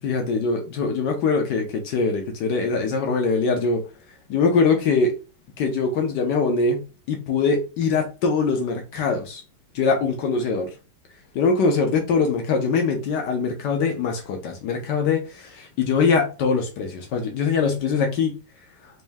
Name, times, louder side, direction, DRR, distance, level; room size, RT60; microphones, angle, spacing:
voice 1, 0.0-3.8 4.3-5.1 5.6-9.4 9.7-10.7 11.3-18.4, left 4 dB, 75° left, 2 dB, 1.4 m, -22 dB
4.2 x 2.7 x 3.4 m, 0.32 s
omnidirectional pair, 1.9 m